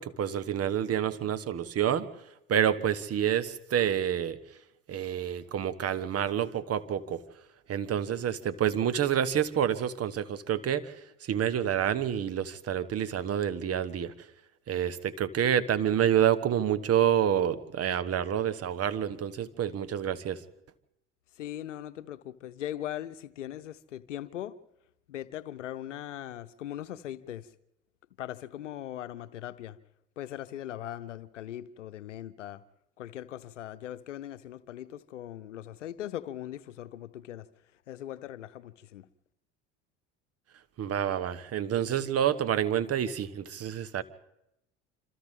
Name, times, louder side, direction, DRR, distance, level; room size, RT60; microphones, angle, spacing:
voice 1, 0.0-2.1 2.5-4.4 4.9-7.2 7.7-10.9 11.2-14.1 14.7-20.4 40.8-44.0, right 9 dB, 40° right, 1.3 m, -28 dB
voice 2, 21.4-24.5 25.1-27.5 28.2-29.8 30.2-32.6 33.0-37.5 37.9-39.1, left 12 dB, 85° left, 0.8 m, -40 dB
26.5 x 26.5 x 3.7 m
hypercardioid pair, 70°, 36 cm